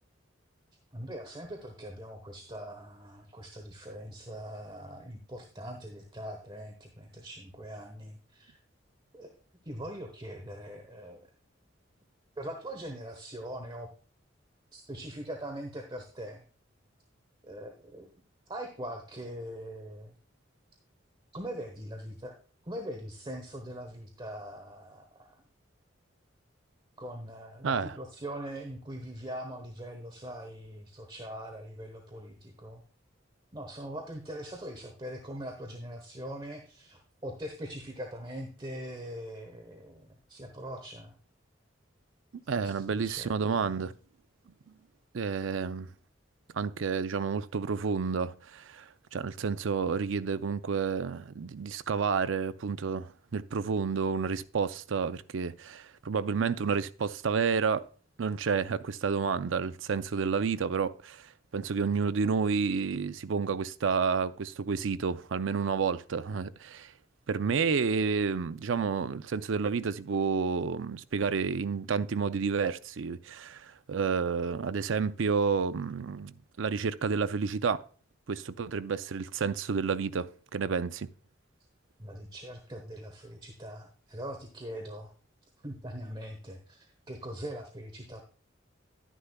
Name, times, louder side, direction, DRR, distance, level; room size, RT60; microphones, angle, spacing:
voice 1, 0.9-8.6 9.1-9.3 9.6-11.3 12.4-13.9 14.7-16.4 17.4-18.1 18.5-20.1 21.3-22.4 22.6-25.4 27.0-32.8 33.5-41.1 42.6-43.8 82.0-85.1 85.6-88.3, equal, 25° right, 1.1 m, -42 dB
voice 2, 42.5-43.9 45.1-45.9 46.5-57.8 58.2-66.9 67.3-77.8 78.3-81.1, right 5 dB, 80° right, 0.5 m, -30 dB
11.0 x 10.0 x 2.3 m
head